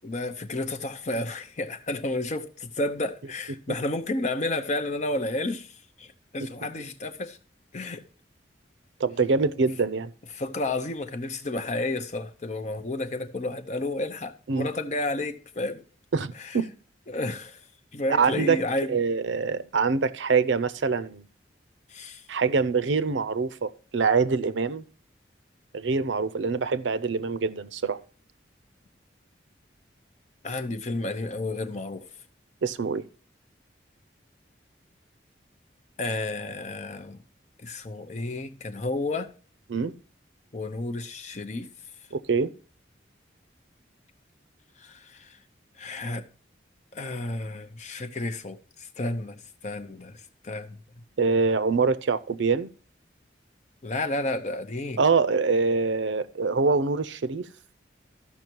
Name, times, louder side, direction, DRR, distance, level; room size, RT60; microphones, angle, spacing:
voice 1, 0.0-5.7 6.0-7.4 7.7-8.0 10.3-15.8 16.4-16.6 17.1-17.6 17.9-18.9 21.9-22.2 30.4-32.1 36.0-37.2 37.6-39.3 40.5-41.7 44.8-45.3 45.8-46.2 46.9-49.4 49.6-50.2 50.4-50.8 53.8-55.0, left 2 dB, 40° left, 0.7 m, -31 dB
voice 2, 9.0-10.1 14.5-14.7 16.1-16.7 18.1-18.6 18.9-21.2 22.3-24.8 25.7-28.0 32.6-33.1 39.7-39.9 42.1-42.5 51.2-52.7 55.0-57.5, right 4 dB, 80° right, 0.6 m, -24 dB
13.5 x 5.7 x 4.5 m
head